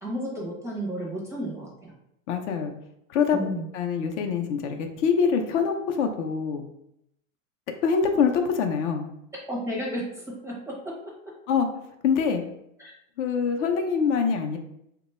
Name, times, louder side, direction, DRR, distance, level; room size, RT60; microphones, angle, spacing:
voice 1, 0.0-1.9 3.3-3.7 9.5-10.7 12.8-12.9, equal, 5° right, -4 dB, 0.5 m, -32 dB
voice 2, 2.3-2.7 3.1-3.4 3.7-6.6 7.8-9.1 11.5-11.7 12.0-12.4 13.2-14.6, left 6 dB, 60° left, 5 dB, 0.6 m, -24 dB
2.9 x 2.2 x 4.1 m, 0.77 s
supercardioid pair, 145°, 41 cm